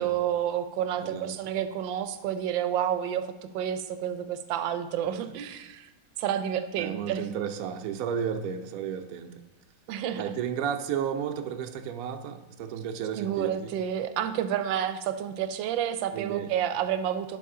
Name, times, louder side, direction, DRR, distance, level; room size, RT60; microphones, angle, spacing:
voice 1, 0.0-3.3 3.5-5.9 6.2-7.2 9.9-10.3 13.2-17.4, right 10 dB, 85° right, 10 dB, 1.3 m, -29 dB
voice 2, 1.0-1.4 5.0-5.3 6.8-9.4 10.1-13.7 16.1-16.5, right 8 dB, 65° right, 6 dB, 0.9 m, -33 dB
11.0 x 4.2 x 3.7 m, 1.1 s
omnidirectional pair, 2.0 m